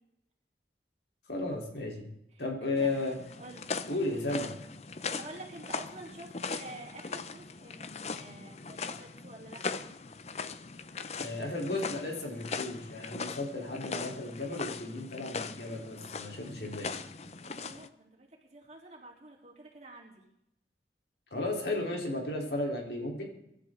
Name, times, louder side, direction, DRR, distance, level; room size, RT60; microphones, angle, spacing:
voice 1, 1.3-2.1 2.4-3.1 3.9-4.5 11.2-16.9 21.3-23.2, left 2 dB, 75° left, 0 dB, 3.8 m, -34 dB
voice 2, 2.3-2.9 3.4-3.7 5.0-9.8 17.4-20.2, right 2 dB, 40° right, -1 dB, 3.7 m, -49 dB
sound 1, 2.8-17.9, left 4 dB, 40° left, 0.7 m, -40 dB
24.5 x 11.5 x 3.8 m, 0.80 s
head